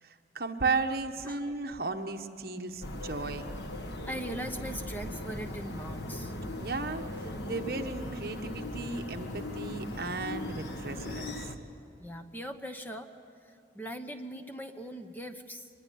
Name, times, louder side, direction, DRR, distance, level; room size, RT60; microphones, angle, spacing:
voice 1, 0.0-3.5 6.6-11.5, right 3 dB, 55° right, 5 dB, 1.3 m, -35 dB
sound 1, 2.8-11.6, left 1 dB, 75° left, 1.7 m, -39 dB
voice 2, 4.0-6.3 12.0-13.1 13.7-15.7, equal, 10° left, 6 dB, 1.0 m, -40 dB
24.0 x 21.0 x 9.3 m, 2.5 s
head